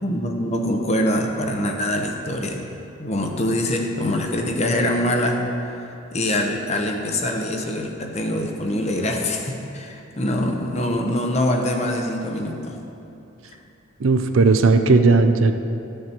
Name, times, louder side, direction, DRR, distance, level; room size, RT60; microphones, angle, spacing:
voice 1, 0.0-2.7 3.0-5.5 6.1-12.8, left 1 dB, 35° left, 2 dB, 0.9 m, -24 dB
voice 2, 14.0-15.6, right 3 dB, 75° right, 8 dB, 0.5 m, -16 dB
12.5 x 6.7 x 4.5 m, 2.7 s
head